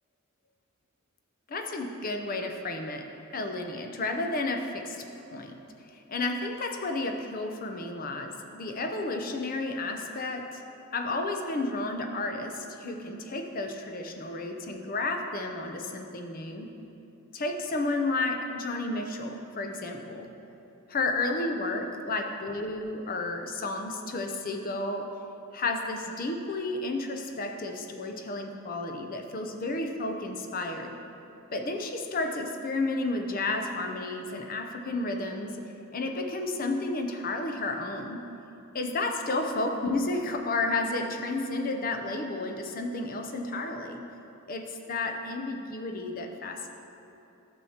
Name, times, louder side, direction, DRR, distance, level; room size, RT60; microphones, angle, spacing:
voice 1, 1.5-3.1 3.3-5.0 5.3-5.6 5.9-10.6 10.9-16.7 17.3-20.3 20.9-25.1 25.5-31.0 31.5-35.6 35.9-38.2 38.7-44.1 44.5-46.7, left 2 dB, 40° left, 4 dB, 0.6 m, -32 dB
11.5 x 7.1 x 2.9 m, 2.9 s
head